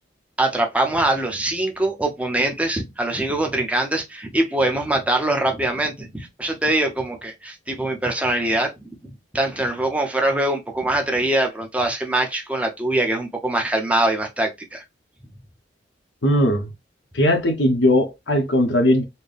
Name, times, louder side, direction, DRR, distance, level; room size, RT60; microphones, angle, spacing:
voice 1, 0.4-8.7 9.3-14.8, right 1 dB, 5° right, 0.7 m, -23 dB
voice 2, 16.2-16.7 17.1-19.0, left 1 dB, 75° left, 0.9 m, -18 dB
4.3 x 2.2 x 3.3 m
head